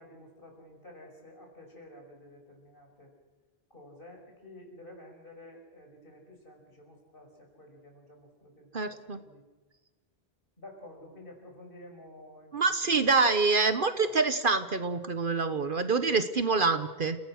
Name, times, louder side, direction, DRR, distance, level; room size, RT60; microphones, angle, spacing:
voice 1, 0.0-3.1 3.7-9.4 10.6-12.5 12.8-13.5 16.0-16.1, left 1 dB, 50° left, 1 dB, 5.9 m, -51 dB
voice 2, 8.7-9.2 12.5-17.2, right 4 dB, 50° right, 10 dB, 1.2 m, -26 dB
30.0 x 17.0 x 6.4 m, 1.2 s
omnidirectional pair, 1.1 m